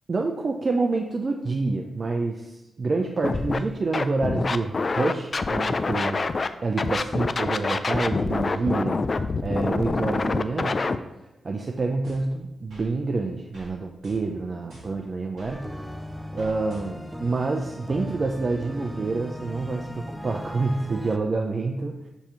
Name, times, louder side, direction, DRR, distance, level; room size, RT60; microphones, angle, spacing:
voice 1, 0.1-6.2 6.6-10.8 11.4-15.6 16.3-22.1, right 3 dB, 50° right, 3 dB, 0.5 m, -27 dB
Scratching (performance technique), 3.2-3.6 3.9-6.5 6.8-11.0, left 3 dB, 45° left, 0.4 m, -26 dB
sound 1, 12.0-12.9 13.5-13.7 14.0-15.6 16.4-17.2, right 1 dB, 85° right, 2.2 m, -48 dB
sound 2, 15.5-21.2, equal, 5° right, 0.7 m, -38 dB
7.0 x 2.9 x 5.5 m, 0.97 s
supercardioid pair, 45°, 0 cm